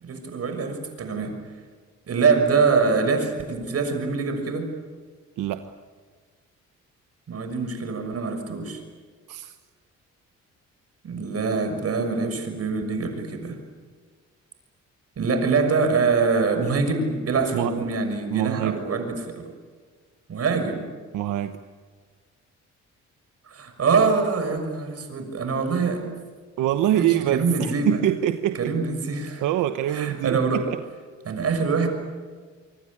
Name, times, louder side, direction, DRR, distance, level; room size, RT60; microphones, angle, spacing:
voice 1, 0.0-1.4 2.1-4.7 7.3-8.8 11.0-13.6 15.2-19.5 20.3-20.9 23.5-26.1 26.9-28.0 28.5-29.4 29.9-30.7 31.3-31.9, right 4 dB, 55° right, 6 dB, 6.4 m, -24 dB
voice 2, 5.4-5.7 9.3-9.5 17.5-17.7 18.3-18.8 21.1-21.5 26.6-28.8 29.4-30.8, right 12 dB, 85° right, 9 dB, 1.1 m, -25 dB
25.5 x 25.0 x 8.8 m, 1.5 s
cardioid pair, 90°, 30 cm